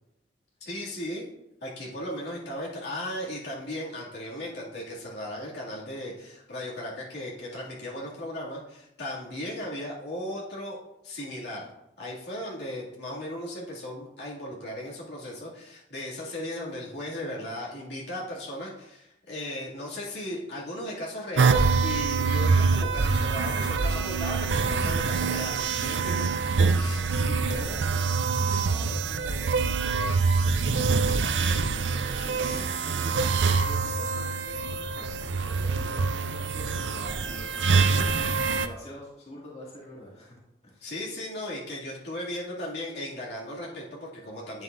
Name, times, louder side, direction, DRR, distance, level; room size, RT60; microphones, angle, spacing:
voice 1, 0.6-1.3 1.6-10.8 11.0-11.7 12.0-26.2 26.8-27.0 40.8-44.6, left 1 dB, 65° left, -6 dB, 2.4 m, -36 dB
sound 1, 21.4-38.7, right 4 dB, 80° right, 0.5 m, -25 dB
voice 2, 26.8-30.1 31.2-33.3 33.6-38.1 38.6-40.3 40.6-40.9, left 1 dB, 35° left, -6 dB, 2.2 m, -45 dB
9.8 x 7.3 x 2.6 m, 0.85 s
head